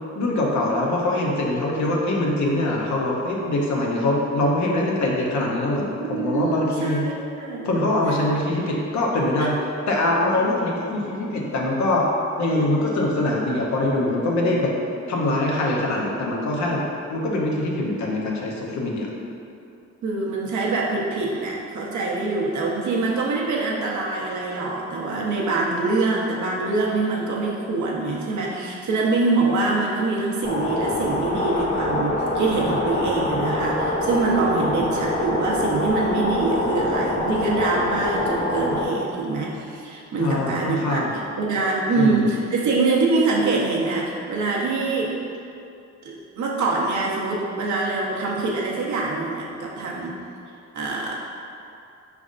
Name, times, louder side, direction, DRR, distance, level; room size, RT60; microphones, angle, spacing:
voice 1, 0.1-7.0 7.6-9.6 9.9-12.1 12.4-14.7 15.1-19.1 40.2-41.1 41.9-42.2, left 1 dB, 75° left, -2 dB, 0.8 m, -23 dB
voice 2, 6.0-7.7 9.4-9.5 20.0-41.0 41.4-45.1 46.0-50.1 50.7-51.2, right 3 dB, 80° right, -3 dB, 0.8 m, -24 dB
sound 1, 30.4-38.8, left 1 dB, 25° left, 0.5 m, -25 dB
5.2 x 3.4 x 2.5 m, 2.6 s
cardioid pair, 115°, 29 cm